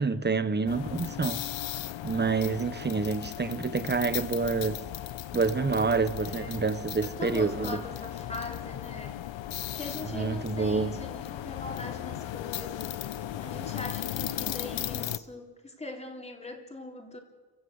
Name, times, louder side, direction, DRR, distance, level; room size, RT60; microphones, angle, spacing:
voice 1, 0.0-1.4 2.0-4.8 5.3-7.8 10.1-11.0, right 4 dB, 25° right, 1.1 m, -28 dB
sound 1, 0.7-15.2, left 12 dB, 85° left, 0.9 m, -36 dB
voice 2, 6.2-6.6 7.0-9.2 9.7-13.0 13.4-17.2, left 2 dB, 15° left, 3.3 m, -41 dB
29.0 x 16.5 x 8.1 m
wide cardioid pair, 130°, 44 cm